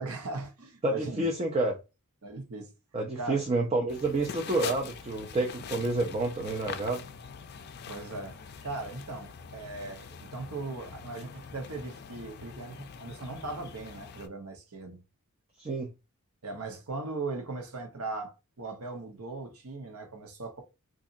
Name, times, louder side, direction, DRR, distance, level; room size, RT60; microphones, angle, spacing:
voice 1, 0.0-1.3 2.2-2.7 3.1-3.4 7.9-15.0 16.4-20.6, right 3 dB, 75° right, 1.0 m, -39 dB
voice 2, 0.8-1.8 2.9-7.0 15.6-15.9, right 2 dB, 30° right, 0.5 m, -29 dB
sound 1, 3.9-14.3, left 6 dB, 45° left, 0.4 m, -44 dB
3.9 x 2.6 x 2.5 m
head